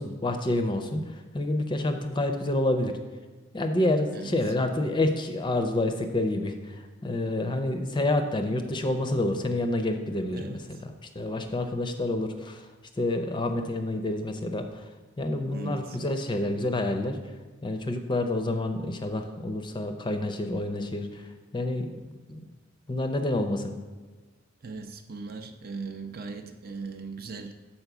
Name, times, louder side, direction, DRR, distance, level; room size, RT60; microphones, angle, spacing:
voice 1, 0.0-3.0 3.5-12.7 13.0-14.8 15.2-17.2 17.6-21.2 21.5-22.4 22.9-23.7, left 1 dB, 25° left, 6 dB, 0.5 m, -28 dB
voice 2, 7.4-7.7 10.3-10.6 15.5-16.0 24.6-27.5, right 4 dB, 50° right, 6 dB, 0.6 m, -39 dB
6.7 x 4.3 x 5.9 m, 1.3 s
head